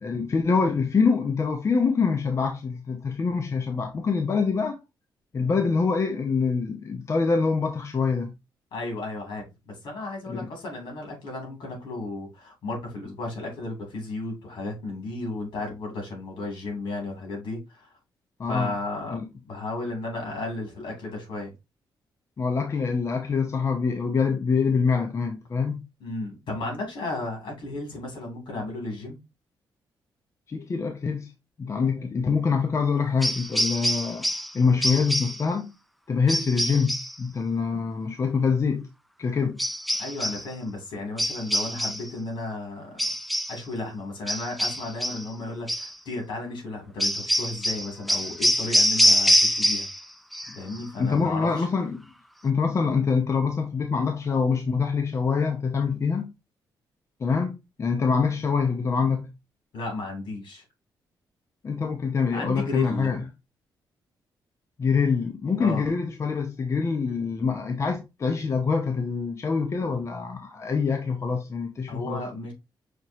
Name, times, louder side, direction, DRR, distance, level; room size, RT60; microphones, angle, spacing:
voice 1, 0.0-4.8 5.3-8.3 10.3-10.5 18.4-18.7 19.1-19.3 22.4-25.8 30.5-31.3 31.6-34.3 34.5-35.7 36.1-38.9 39.2-39.6 50.9-52.1 52.4-56.3 57.2-59.3 61.6-63.2 64.8-72.2, left 5 dB, 35° left, 0.7 m, -25 dB
voice 2, 8.7-17.9 18.4-19.2 19.5-21.5 26.0-29.2 39.4-39.5 40.0-43.0 43.5-49.9 50.5-51.7 59.7-60.6 62.3-63.1 65.6-65.9 71.9-72.5, left 2 dB, 75° left, 2.6 m, -34 dB
sound 1, 33.2-34.5 34.8-35.4 36.3-37.2 39.6-40.5 41.2-42.1 43.0-43.6 44.3-45.3 45.7-45.9 47.0-50.0 50.3-50.8, equal, ahead, 0.3 m, -25 dB
6.0 x 3.0 x 2.7 m
cardioid pair, 110°, 8 cm